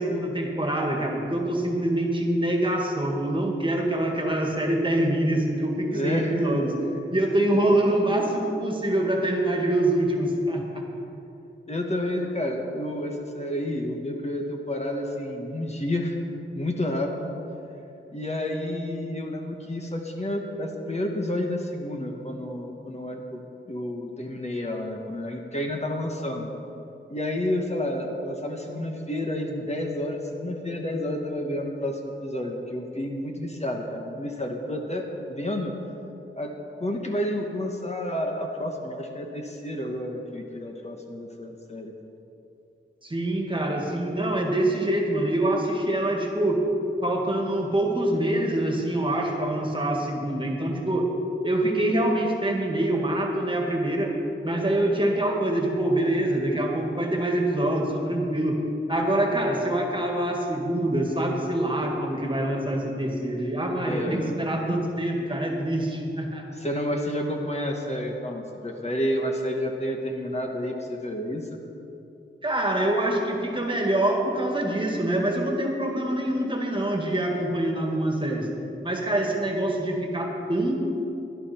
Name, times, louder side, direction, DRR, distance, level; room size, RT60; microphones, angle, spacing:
voice 1, 0.0-6.8 7.1-10.8 43.0-46.7 47.0-51.1 51.4-54.2 54.4-58.6 58.9-66.4 72.4-78.5 78.8-80.8, right 1 dB, 25° right, 1 dB, 2.0 m, -25 dB
voice 2, 5.9-6.3 11.7-16.2 16.5-17.3 18.1-23.4 23.7-26.5 27.1-35.7 36.3-36.5 36.8-41.9 63.9-64.5 66.5-71.5, left 1 dB, 30° left, 1 dB, 1.3 m, -30 dB
17.5 x 11.5 x 4.4 m, 2.8 s
wide cardioid pair, 90°, 21 cm